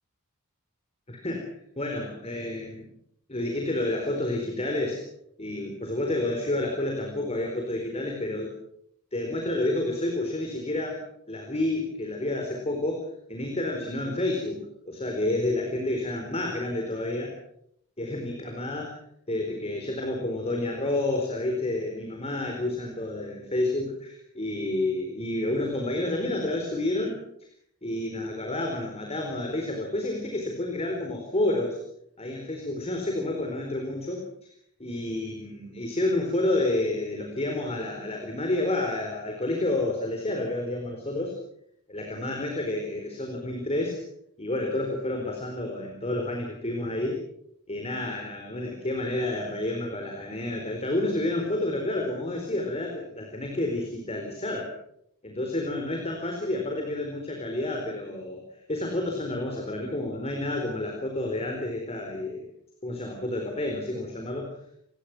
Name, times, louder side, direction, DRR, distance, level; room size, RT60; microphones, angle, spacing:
voice 1, 1.1-1.5 1.8-2.8 3.3-5.0 5.4-8.5 9.1-11.0 11.3-17.3 18.0-18.9 19.3-27.2 27.8-31.8 32.2-34.3 34.8-41.3 41.9-44.0 44.4-47.2 47.7-54.7 55.2-58.4 58.7-62.5 62.8-64.6, left 2 dB, 30° left, 2 dB, 4.2 m, -29 dB
27.0 x 20.5 x 6.1 m, 0.71 s
head